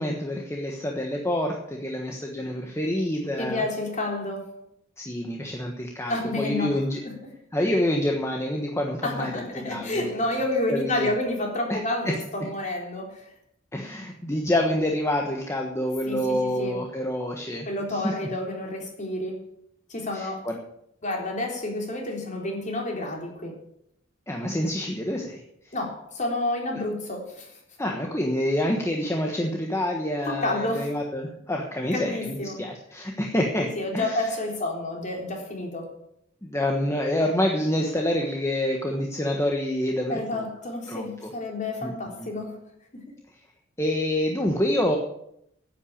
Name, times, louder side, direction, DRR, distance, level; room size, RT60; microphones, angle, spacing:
voice 1, 0.0-3.6 5.0-7.0 7.5-10.1 10.7-11.2 11.7-11.8 12.0-12.1 13.7-18.1 20.1-20.6 24.3-25.4 27.8-33.7 33.9-34.3 36.4-40.5 40.9-41.3 41.8-41.9 42.2-42.3 43.8-45.0, left 1 dB, 15° left, 1 dB, 1.3 m, -27 dB
voice 2, 3.4-4.5 6.1-7.1 9.0-13.2 16.1-16.8 17.7-19.4 19.9-20.5 21.0-23.5 25.7-27.5 30.3-30.9 31.9-32.6 33.6-35.9 40.1-42.5, left 2 dB, 40° left, 0 dB, 3.7 m, -30 dB
10.5 x 8.8 x 8.7 m, 0.76 s
head